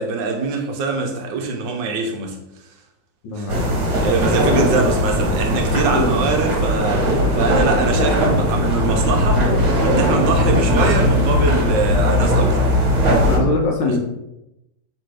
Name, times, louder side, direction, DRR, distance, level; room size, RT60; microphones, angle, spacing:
voice 1, 0.0-2.4 3.4-3.5 4.0-7.1 7.3-13.0 13.8-14.0, right 3 dB, 70° right, 3 dB, 1.2 m, -23 dB
voice 2, 3.2-3.6 4.5-4.8 5.9-6.1 13.3-14.0, left 2 dB, 75° left, 1 dB, 1.4 m, -22 dB
sound 1, 3.5-13.4, equal, 55° right, 1.4 m, -18 dB
3.4 x 3.0 x 4.7 m, 0.91 s
omnidirectional pair, 2.1 m